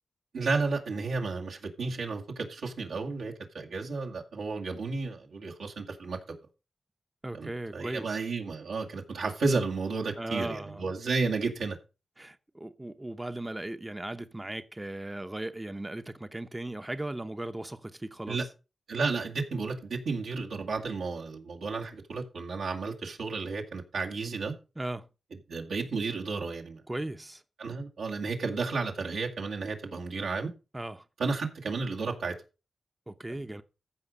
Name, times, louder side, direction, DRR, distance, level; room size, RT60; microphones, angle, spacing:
voice 1, 0.3-6.4 7.3-11.8 18.3-18.4 18.9-24.5 25.5-26.8 27.6-30.5 31.2-32.4, right 4 dB, 90° right, 2.1 m, -32 dB
voice 2, 7.2-8.2 10.2-10.9 12.2-18.5 24.8-25.1 26.9-27.4 30.7-31.0 33.1-33.6, right 1 dB, 20° right, 0.8 m, -37 dB
14.5 x 5.1 x 5.2 m
cardioid pair, 45°, 0 cm